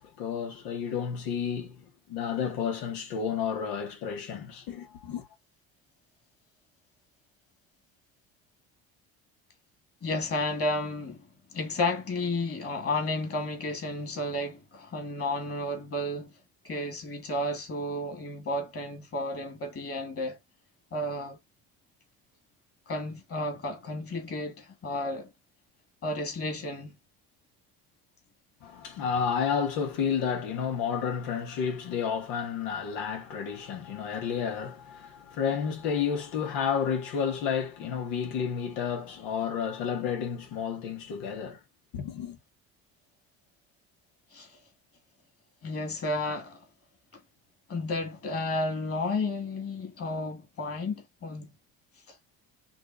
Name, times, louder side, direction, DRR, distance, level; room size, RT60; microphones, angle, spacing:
voice 1, 0.0-1.8 2.1-5.3 28.6-41.6 41.9-42.4, left 7 dB, 85° left, 1.7 m, -31 dB
voice 2, 10.0-16.3 16.6-20.4 20.9-21.4 22.9-25.3 26.0-27.0 44.3-44.6 45.6-46.6 47.7-51.5 52.1-52.2, left 2 dB, 40° left, 2.5 m, -32 dB
6.0 x 2.7 x 2.6 m
supercardioid pair, 90°, 34 cm